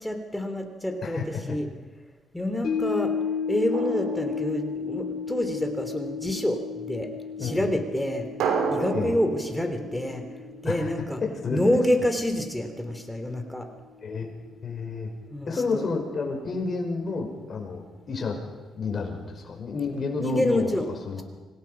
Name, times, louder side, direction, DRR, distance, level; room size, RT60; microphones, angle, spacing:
voice 1, 0.0-1.2 1.5-1.7 2.3-3.1 3.5-7.1 7.4-8.3 8.7-10.2 10.6-11.2 11.5-13.7 15.3-15.9 20.2-20.9, left 1 dB, 5° left, 5 dB, 3.1 m, -27 dB
voice 2, 1.0-1.6 7.4-7.7 8.8-9.1 10.6-10.9 11.2-11.6 14.0-14.3 14.6-15.1 15.5-18.4 18.7-21.2, left 4 dB, 45° left, 2 dB, 5.6 m, -30 dB
sound 1, 2.6-13.0 13.4-13.5, left 6 dB, 60° left, 4.5 m, -34 dB
Drum, 3.7-5.3 8.4-11.1, right 5 dB, 85° right, 3.4 m, -32 dB
26.0 x 17.5 x 5.9 m, 1.3 s
cardioid pair, 90°, 0 cm